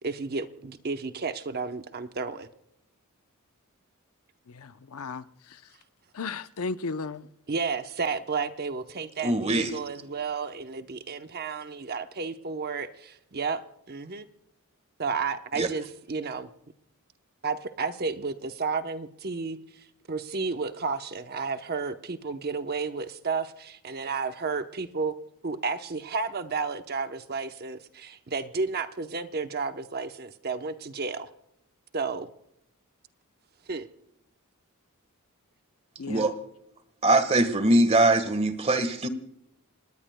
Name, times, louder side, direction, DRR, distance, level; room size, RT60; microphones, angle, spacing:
voice 1, 0.0-2.5 7.5-14.3 15.0-16.5 17.4-25.1 25.4-31.3 31.9-32.3 33.7-33.9, right 4 dB, 45° right, 0.8 m, -32 dB
voice 2, 4.5-5.2 5.5-5.6 6.1-7.3 36.0-36.3, left 4 dB, 75° left, 0.6 m, -35 dB
voice 3, 9.2-9.8 15.6-15.7 36.1-36.3 37.0-39.1, right 2 dB, 30° right, 1.4 m, -22 dB
28.0 x 19.5 x 2.2 m
head